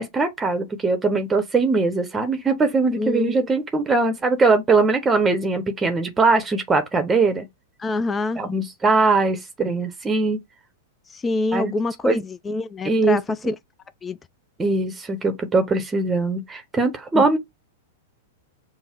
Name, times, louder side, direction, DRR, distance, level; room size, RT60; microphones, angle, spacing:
voice 1, 0.0-7.4 8.4-10.4 11.5-11.7 12.0-12.2 12.8-13.2 14.6-17.4, right 3 dB, 15° right, 0.8 m, -21 dB
voice 2, 3.0-3.4 7.8-8.4 11.1-13.6 14.0-14.2 17.1-17.3, left 3 dB, 15° left, 0.3 m, -25 dB
5.4 x 2.0 x 4.4 m
hypercardioid pair, 115°, 0 cm